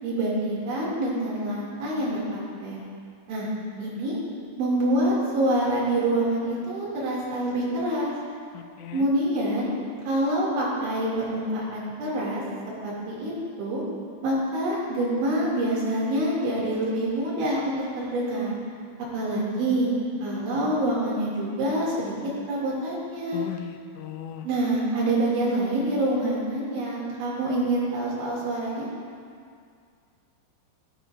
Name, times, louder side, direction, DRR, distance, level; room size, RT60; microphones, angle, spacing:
voice 1, 0.0-2.8 3.3-3.5 3.8-4.2 4.6-8.1 8.9-9.7 10.1-11.4 11.7-12.4 12.8-13.8 14.2-18.5 19.1-19.9 20.2-22.1 22.5-23.4 24.4-28.9, right 1 dB, 80° right, -6 dB, 4.8 m, -26 dB
voice 2, 8.5-9.1 23.3-24.5, left 10 dB, 90° left, 7 dB, 3.0 m, -37 dB
13.0 x 13.0 x 2.5 m, 2.2 s
omnidirectional pair, 5.3 m